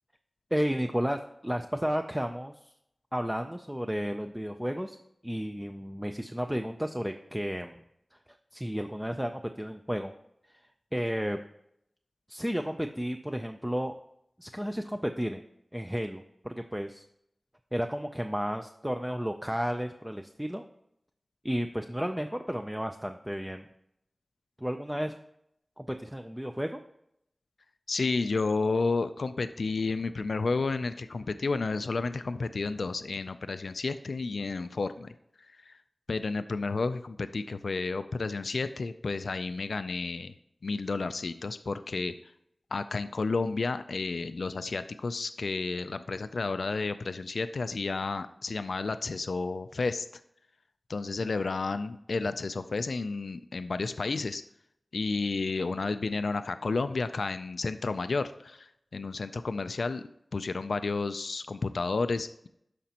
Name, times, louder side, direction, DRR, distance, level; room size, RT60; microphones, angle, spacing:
voice 1, 0.5-2.7 3.1-5.0 5.2-7.8 8.5-10.1 10.9-11.4 12.3-13.9 14.4-15.4 15.7-17.0 17.7-20.6 21.4-23.7 24.6-25.1 25.8-26.8, equal, 5° right, 6 dB, 0.4 m, -32 dB
voice 2, 27.9-35.1 35.7-35.8 36.1-40.3 40.6-42.1 42.7-50.1 50.9-54.4 54.9-60.0 60.3-62.5, left 3 dB, 85° left, 11 dB, 0.3 m, -31 dB
12.5 x 5.1 x 2.9 m, 0.76 s
wide cardioid pair, 80°, 0 cm